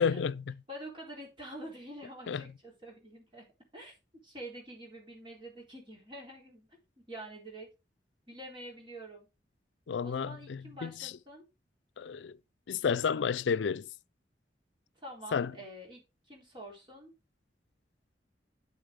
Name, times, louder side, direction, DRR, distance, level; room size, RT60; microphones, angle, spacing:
voice 1, 0.0-0.5 2.3-2.4 9.9-11.1 12.0-12.3 12.7-13.9 15.3-15.5, left 6 dB, 90° left, 0.4 m, -31 dB
voice 2, 0.7-3.5 3.7-7.7 8.3-9.3 10.0-11.5 15.0-17.1, right 1 dB, 30° right, 3.8 m, -47 dB
8.7 x 8.3 x 3.7 m
head